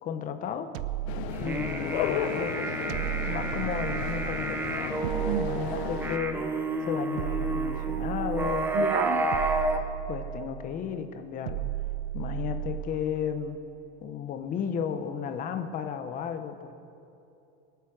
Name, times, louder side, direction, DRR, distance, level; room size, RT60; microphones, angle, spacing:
voice 1, 0.0-0.7 1.4-2.7 3.2-4.8 5.4-6.4 6.8-8.7 10.1-11.7 12.1-13.6 14.0-16.7, left 8 dB, 25° left, 8 dB, 0.8 m, -33 dB
sound 1, 0.7-2.1 2.9-4.5 5.0-6.4 7.2-8.8 9.3-10.7 11.5-13.1, right 14 dB, 70° right, 0.6 m, -34 dB
sound 2, 1.1-6.2, left 10 dB, 85° left, 0.9 m, -34 dB
sound 3, 1.3-9.8, right 2 dB, 5° right, 0.5 m, -31 dB
voice 2, 5.0-5.5 8.7-9.3, right 11 dB, 85° right, 12 dB, 1.0 m, -30 dB
23.0 x 8.2 x 6.1 m, 2.7 s
cardioid pair, 170°, 31 cm